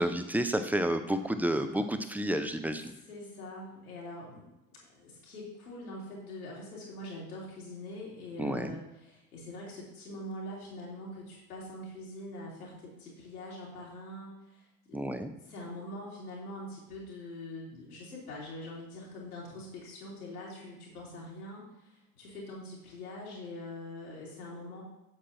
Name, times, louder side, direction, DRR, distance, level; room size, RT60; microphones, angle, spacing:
voice 1, 0.0-2.9 8.4-8.8 14.9-15.3, right 1 dB, 5° right, 8 dB, 0.6 m, -30 dB
voice 2, 3.1-24.8, left 1 dB, 85° left, -5 dB, 2.7 m, -44 dB
8.4 x 7.5 x 2.8 m, 0.94 s
hypercardioid pair, 65°, 44 cm